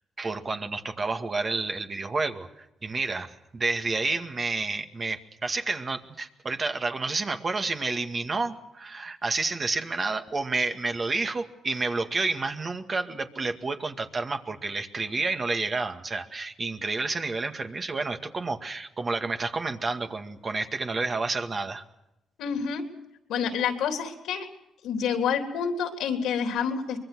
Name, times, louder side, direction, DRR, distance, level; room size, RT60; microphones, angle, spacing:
voice 1, 0.2-2.5 2.8-21.8, right 3 dB, 35° right, 6 dB, 2.0 m, -30 dB
voice 2, 22.4-22.8 23.3-24.5 24.8-27.0, left 7 dB, 85° left, 5 dB, 3.4 m, -28 dB
24.5 x 22.5 x 6.3 m, 0.90 s
cardioid pair, 90°, 0 cm